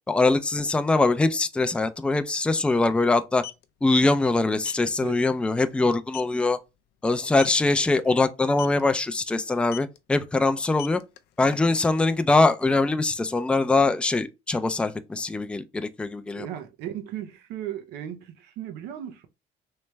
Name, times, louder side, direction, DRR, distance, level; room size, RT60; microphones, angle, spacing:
voice 1, 0.1-3.4 3.8-6.6 7.0-11.0 11.4-16.5, left 3 dB, 5° left, 0.3 m, -23 dB
sound 1, 1.6-1.7 1.9-2.1 3.2-3.6 4.6-4.8 5.3-5.5 5.8-5.9 6.1-6.4 7.3-7.6 8.5-8.8 9.7-10.0 10.6-11.9, left 13 dB, 80° left, 0.5 m, -40 dB
voice 2, 16.4-19.3, right 11 dB, 90° right, 0.6 m, -36 dB
3.2 x 3.1 x 3.2 m
cardioid pair, 110°, 17 cm